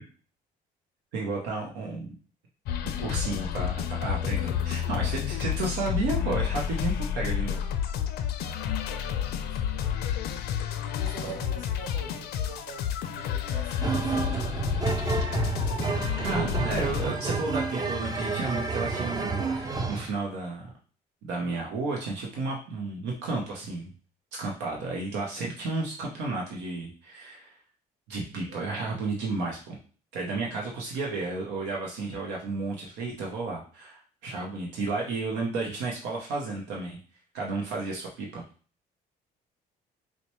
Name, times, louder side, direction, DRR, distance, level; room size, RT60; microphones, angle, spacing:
voice 1, 1.1-2.1 2.8-7.7 13.5-13.6 15.1-15.6 16.2-20.7 21.2-23.9 24.3-27.5 28.1-29.8 30.1-37.0 37.3-38.4, right 3 dB, 90° right, -1 dB, 0.8 m, -32 dB
sound 1, 2.7-17.1, left 9 dB, 70° left, 0.4 m, -30 dB
voice 2, 8.9-10.0 10.8-14.9 28.3-28.4, right 3 dB, 50° right, -1 dB, 1.4 m, -45 dB
sound 2, 13.8-20.1, right 4 dB, 25° right, 0.5 m, -29 dB
4.1 x 2.2 x 3.0 m, 0.39 s
cardioid pair, 110°, 17 cm